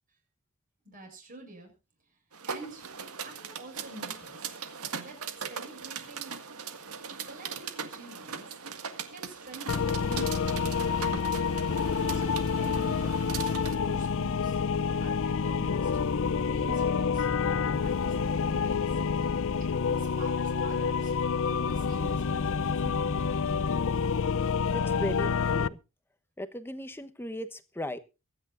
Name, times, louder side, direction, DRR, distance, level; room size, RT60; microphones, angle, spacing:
voice 1, 0.8-1.7 2.5-2.9 3.2-4.5 5.0-6.3 7.3-8.6 9.1-11.1 12.1-14.6 15.0-19.0 19.9-21.2 21.5-23.1, right 3 dB, 40° right, 3 dB, 7.3 m, -48 dB
sound 1, 2.3-13.8, right 6 dB, 80° right, 1.8 m, -40 dB
sound 2, 9.7-25.7, left 5 dB, 65° left, 0.5 m, -28 dB
voice 2, 24.7-25.8 26.4-28.0, left 1 dB, 10° left, 11 dB, 1.0 m, -37 dB
23.5 x 9.9 x 2.5 m, 0.30 s
head